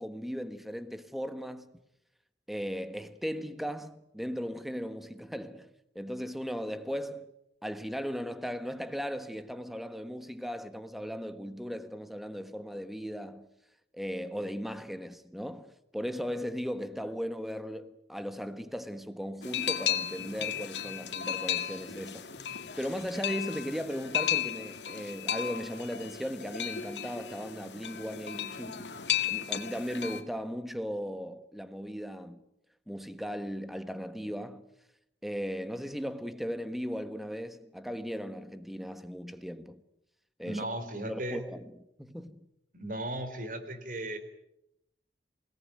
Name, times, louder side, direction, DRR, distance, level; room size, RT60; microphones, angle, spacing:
voice 1, 0.0-1.7 2.5-5.7 5.9-7.3 7.6-13.5 13.9-29.0 29.3-32.4 32.9-34.6 35.2-39.8 40.4-40.6 41.0-42.4, equal, ahead, 1.3 m, -37 dB
sound 1, 19.4-30.2, left 10 dB, 85° left, 2.1 m, -34 dB
voice 2, 40.5-41.4 42.7-44.2, right 1 dB, 50° right, 3.7 m, -36 dB
28.0 x 18.5 x 9.3 m
head